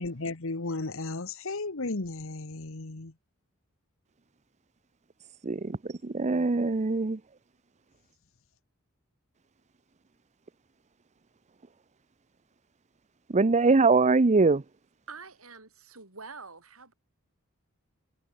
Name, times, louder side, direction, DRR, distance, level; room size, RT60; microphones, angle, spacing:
voice 1, 0.0-3.1, left 3 dB, 70° left, 1.4 m, -34 dB
voice 2, 5.4-5.8 6.0-7.2 13.3-14.6, right 3 dB, 35° right, 0.6 m, -22 dB
voice 3, 15.1-16.9, right 4 dB, 80° right, 6.3 m, -46 dB
head